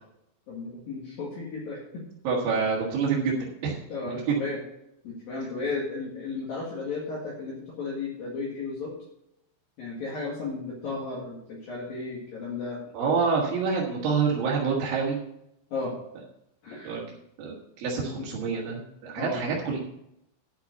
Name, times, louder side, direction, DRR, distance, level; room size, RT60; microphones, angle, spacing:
voice 1, 0.5-1.8 3.9-4.6 5.0-8.9 9.8-12.8 15.7-15.9 16.6-17.0 18.0-18.3 19.2-19.4, left 3 dB, 55° left, -4 dB, 3.1 m, -34 dB
voice 2, 2.2-3.8 4.1-4.4 12.9-15.2 16.8-17.0 17.4-19.8, right 5 dB, 60° right, -4 dB, 2.7 m, -27 dB
11.0 x 5.9 x 6.6 m, 0.80 s
omnidirectional pair, 5.9 m